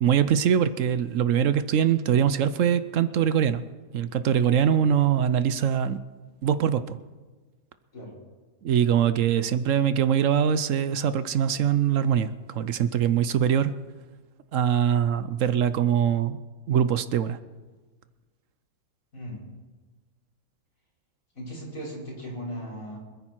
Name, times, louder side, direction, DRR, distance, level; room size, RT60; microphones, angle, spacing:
voice 1, 0.0-3.6 3.9-6.0 6.4-7.0 8.6-13.7 14.5-16.4 16.7-17.4, right 9 dB, 70° right, 14 dB, 1.0 m, -23 dB
voice 2, 19.1-19.4 21.4-23.0, equal, 70° left, -6 dB, 5.8 m, -37 dB
25.5 x 9.9 x 4.5 m, 1.3 s
omnidirectional pair, 1.5 m